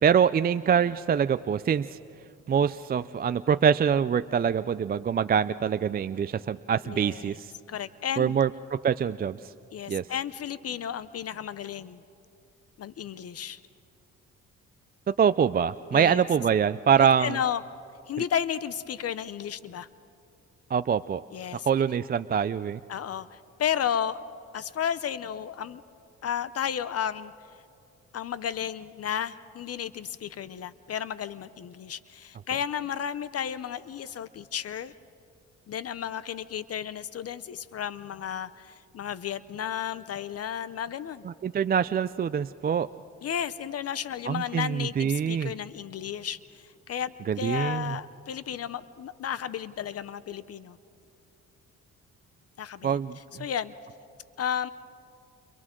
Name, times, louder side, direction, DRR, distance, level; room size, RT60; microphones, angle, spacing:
voice 1, 0.0-2.0 2.5-7.5 8.2-9.4 9.9-10.0 15.1-17.4 20.7-21.2 21.7-22.8 41.2-42.9 44.3-45.5 47.3-48.0 52.8-53.4, right 7 dB, 30° right, 13 dB, 0.4 m, -24 dB
voice 2, 6.8-7.4 7.7-8.3 9.7-12.0 12.8-13.6 15.9-16.2 17.2-17.6 18.1-19.9 21.3-21.7 22.9-24.2 24.5-25.8 26.2-27.3 28.1-34.9 35.7-41.2 43.2-50.8 52.6-53.0 53.4-53.7 54.4-54.7, left 9 dB, 55° left, 15 dB, 0.7 m, -33 dB
29.5 x 29.0 x 3.8 m, 2.7 s
cardioid pair, 90°, 30 cm